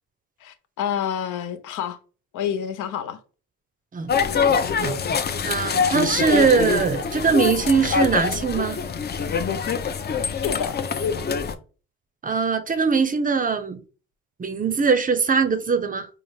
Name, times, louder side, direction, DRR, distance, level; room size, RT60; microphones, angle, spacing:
voice 1, 0.4-2.0 2.3-3.2 10.3-10.8, left 9 dB, 80° left, 0.7 m, -28 dB
sound 1, 4.1-11.5, left 5 dB, 35° left, 0.5 m, -24 dB
voice 2, 5.4-8.8 12.2-13.8 14.4-16.1, right 5 dB, 30° right, 0.5 m, -21 dB
4.0 x 2.4 x 3.2 m
cardioid pair, 90°, 30 cm